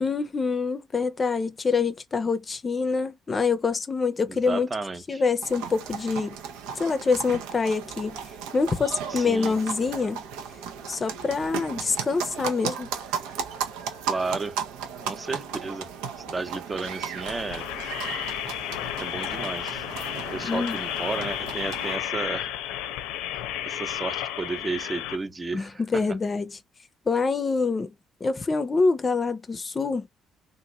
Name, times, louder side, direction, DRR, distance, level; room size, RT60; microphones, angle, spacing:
voice 1, 0.0-4.7 5.1-6.4 6.8-8.2 8.5-10.2 10.9-12.9 20.4-20.8 25.5-26.6 27.1-27.9 28.2-30.1, left 4 dB, 35° left, 0.6 m, -25 dB
voice 2, 4.3-5.2 9.1-9.5 14.1-14.6 15.0-15.9 16.3-17.6 19.0-19.8 20.3-22.5 23.3-26.0, right 3 dB, 30° right, 0.8 m, -33 dB
sound 1, 5.4-22.0, right 7 dB, 80° right, 0.6 m, -35 dB
sound 2, 17.2-25.1, left 11 dB, 80° left, 0.6 m, -32 dB
2.9 x 2.5 x 3.9 m
hypercardioid pair, 60°, 0 cm